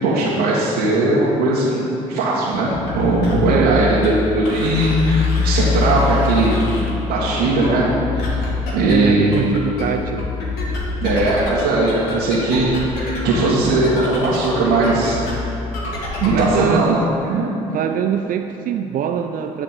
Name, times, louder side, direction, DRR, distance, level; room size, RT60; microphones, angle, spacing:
voice 1, 0.0-1.8 2.1-6.6 7.1-7.9 8.3-8.4 8.7-9.4 11.0-15.2 16.2-16.9 17.3-17.5, right 2 dB, 75° right, -8 dB, 1.7 m, -18 dB
sound 1, 2.5-16.6, left 4 dB, 70° left, 2.0 m, -25 dB
voice 2, 3.5-3.9 8.8-10.3 16.3-17.0 17.7-19.6, right 9 dB, 55° right, 6 dB, 0.5 m, -22 dB
11.0 x 4.4 x 7.4 m, 2.9 s
hypercardioid pair, 55°, 17 cm